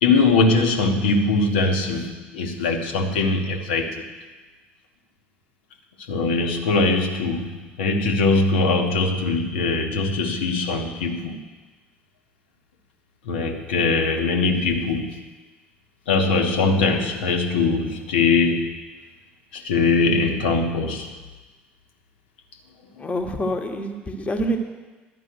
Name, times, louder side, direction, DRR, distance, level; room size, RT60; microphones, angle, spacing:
voice 1, 0.0-4.0 6.1-11.4 13.2-15.2 16.1-18.8 19.5-21.1, left 3 dB, 70° left, 3 dB, 1.2 m, -21 dB
voice 2, 23.0-24.6, equal, 20° left, 4 dB, 1.3 m, -26 dB
11.5 x 5.5 x 8.0 m, 1.3 s
figure-of-eight pair, 60°, 6 cm